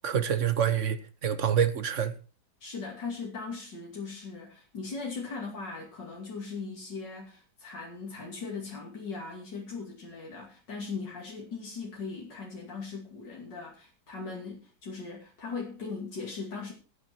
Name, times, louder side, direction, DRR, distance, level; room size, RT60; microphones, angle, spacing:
voice 1, 0.0-2.1, right 8 dB, 50° right, 1.3 m, -27 dB
voice 2, 2.6-16.7, left 4 dB, 75° left, 3.3 m, -39 dB
15.0 x 9.1 x 4.5 m
omnidirectional pair, 1.9 m